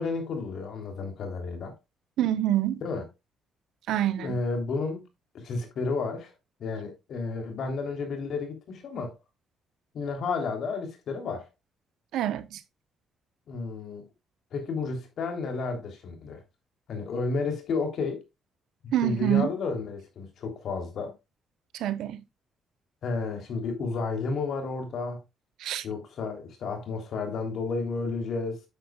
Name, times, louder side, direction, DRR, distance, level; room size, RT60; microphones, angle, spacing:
voice 1, 0.0-1.8 2.8-3.0 4.2-5.1 5.3-6.3 6.6-9.1 9.9-11.5 13.5-14.1 14.5-16.4 16.9-18.2 19.0-21.1 23.0-25.2 25.8-28.6, left 4 dB, 65° left, 3.2 m, -32 dB
voice 2, 2.2-2.8 3.9-4.4 12.1-12.6 18.9-19.5 21.7-22.2 25.6-25.8, right 12 dB, 85° right, 0.9 m, -26 dB
9.1 x 8.1 x 2.3 m
cardioid pair, 90°, 0 cm